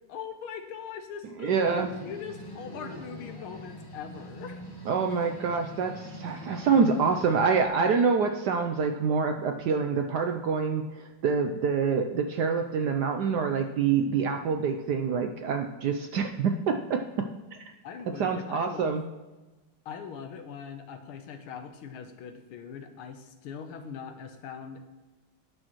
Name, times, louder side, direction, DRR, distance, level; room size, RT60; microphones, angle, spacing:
voice 1, 0.1-4.6 17.8-19.0 19.8-24.8, left 7 dB, 85° left, 7 dB, 1.7 m, -41 dB
voice 2, 1.4-1.9 4.9-17.6 18.2-19.0, right 5 dB, 70° right, 5 dB, 1.0 m, -26 dB
sound 1, 1.6-7.7, equal, 25° left, 0.5 m, -43 dB
19.0 x 6.4 x 3.1 m, 1.2 s
omnidirectional pair, 2.3 m